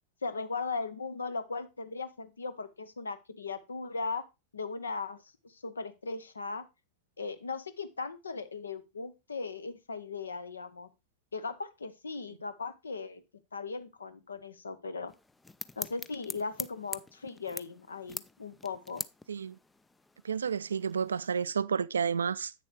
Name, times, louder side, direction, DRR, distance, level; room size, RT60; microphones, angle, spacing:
voice 1, 0.2-4.2 4.5-6.6 7.2-10.9 11.3-13.2 13.5-15.1 15.8-19.0, left 4 dB, 75° left, 0.8 m, -38 dB
sound 1, 15.1-21.5, left 3 dB, 10° left, 0.3 m, -44 dB
voice 2, 19.3-19.6 20.2-22.5, right 6 dB, 70° right, 0.3 m, -31 dB
8.3 x 6.7 x 3.2 m
figure-of-eight pair, 90°, 0 cm